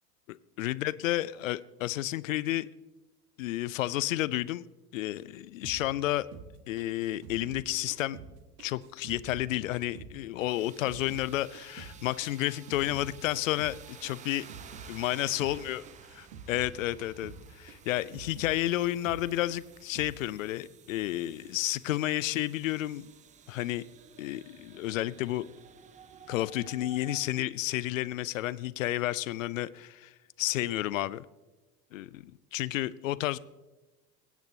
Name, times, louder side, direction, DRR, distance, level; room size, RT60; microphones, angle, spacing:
voice 1, 0.3-2.7 3.4-4.6 4.9-6.3 6.7-8.2 8.6-14.4 14.9-15.8 16.2-23.1 23.5-23.8 24.2-25.5 26.3-30.1 30.4-31.3 31.9-33.4, left 15 dB, 55° left, 17 dB, 0.5 m, -31 dB
sound 1, 5.6-8.3 8.6-11.3 11.5-14.9 15.2-15.6 15.9-18.6 18.8-19.2 19.5-20.2, right 5 dB, 50° right, 1.6 m, -48 dB
sound 2, 10.5-27.2, right 7 dB, 15° right, 0.5 m, -53 dB
23.0 x 8.1 x 2.8 m, 1.1 s
figure-of-eight pair, 75°, 48 cm